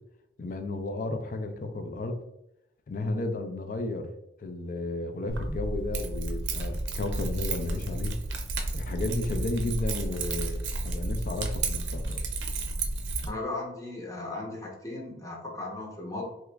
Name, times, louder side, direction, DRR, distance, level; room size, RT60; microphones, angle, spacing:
voice 1, 0.4-2.2 2.9-4.1 4.4-8.1 8.7-12.2, left 2 dB, 50° left, 6 dB, 0.4 m, -33 dB
Keys jangling, 5.3-13.3, right 2 dB, 85° right, 0.5 m, -32 dB
voice 2, 13.3-16.2, left 2 dB, 20° left, -1 dB, 0.7 m, -36 dB
2.9 x 2.3 x 3.3 m, 0.84 s
head